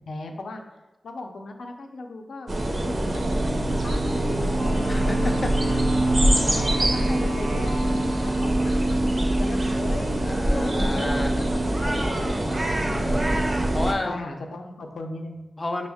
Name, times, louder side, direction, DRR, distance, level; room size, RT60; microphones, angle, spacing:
voice 1, 0.1-0.6 1.0-2.5 2.8-5.8 6.5-9.0 9.3-13.1 14.0-15.4, left 2 dB, 90° left, 4 dB, 0.5 m, -38 dB
sound 1, 2.5-13.9, right 1 dB, 35° right, 0.5 m, -23 dB
Wind instrument woodwind instrument, 4.5-8.8, equal, 80° right, 0.6 m, -35 dB
voice 2, 4.9-5.6 10.2-11.3 12.4-14.2 15.6-15.9, left 2 dB, 30° left, 4 dB, 0.4 m, -31 dB
6.0 x 2.1 x 3.5 m, 1.1 s
wide cardioid pair, 135°, 0 cm